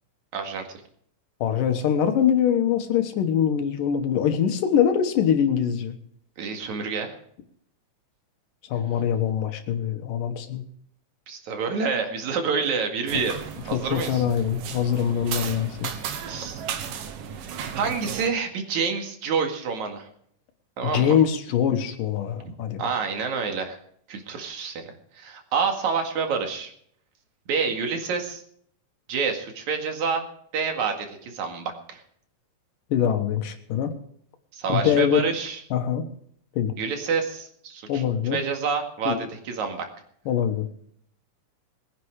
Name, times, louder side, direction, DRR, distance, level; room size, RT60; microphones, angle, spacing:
voice 1, 0.3-0.6 6.4-7.2 11.3-13.4 13.7-14.2 16.3-16.6 17.7-20.1 20.8-21.2 22.8-23.8 24.1-26.7 27.5-28.4 29.1-30.2 30.5-32.0 34.5-35.6 36.8-38.0 38.3-39.9, right 5 dB, 65° right, 4 dB, 3.3 m, -28 dB
voice 2, 1.4-6.0 8.7-10.6 13.7-15.9 20.9-22.8 32.9-33.9 34.7-35.2 35.7-36.0 36.6-36.7 37.9-38.4 39.1-39.3 40.3-40.7, left 9 dB, 85° left, 7 dB, 3.0 m, -23 dB
sound 1, 13.1-18.3, right 7 dB, 90° right, 3.0 m, -35 dB
21.5 x 9.9 x 4.8 m, 0.65 s
omnidirectional pair, 3.7 m